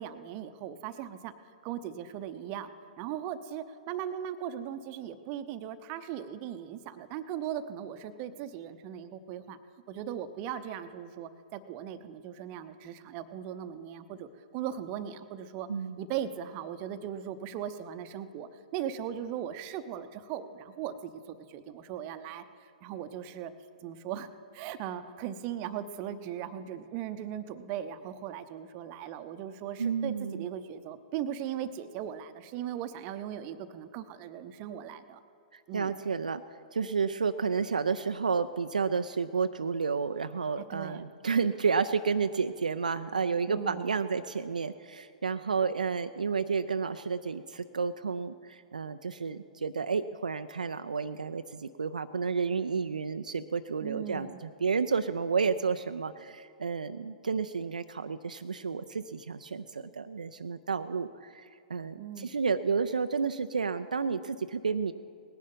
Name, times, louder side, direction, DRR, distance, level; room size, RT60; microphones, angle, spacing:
voice 1, 0.0-1.3 1.6-9.6 9.9-15.7 16.0-22.4 22.8-23.5 23.8-24.3 24.5-35.2 35.7-36.0 40.6-41.1 43.5-43.9 53.8-54.4 62.0-62.3, right 10 dB, 35° right, 11 dB, 0.7 m, -38 dB
voice 2, 29.8-30.5 35.5-36.4 36.7-64.9, right 5 dB, 75° right, 10 dB, 0.4 m, -31 dB
18.5 x 10.0 x 5.4 m, 2.4 s
figure-of-eight pair, 110°, 4 cm